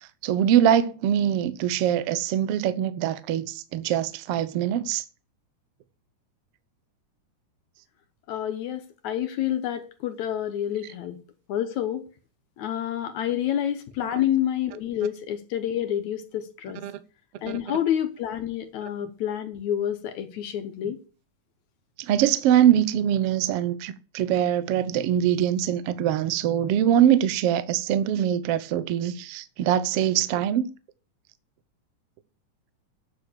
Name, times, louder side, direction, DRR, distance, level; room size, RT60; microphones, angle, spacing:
voice 1, 0.2-5.0 16.8-17.0 17.5-17.8 19.0-19.1 20.8-20.9 22.0-30.6, right 10 dB, 75° right, 1.4 m, -23 dB
voice 2, 8.3-11.2 11.5-12.1 12.6-16.8 17.4-21.0, left 10 dB, 70° left, 2.3 m, -28 dB
8.9 x 8.5 x 6.6 m
omnidirectional pair, 3.7 m